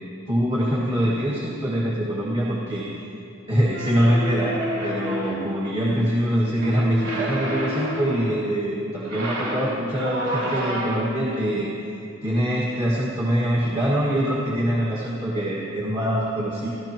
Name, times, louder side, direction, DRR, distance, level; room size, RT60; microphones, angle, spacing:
voice 1, 0.3-2.9 3.5-11.7 12.2-16.7, equal, 20° right, -6 dB, 1.7 m, -24 dB
sound 1, 3.7-5.6 6.5-8.3 9.0-11.2, equal, 70° right, 4.1 m, -29 dB
30.0 x 13.0 x 3.0 m, 2.7 s
head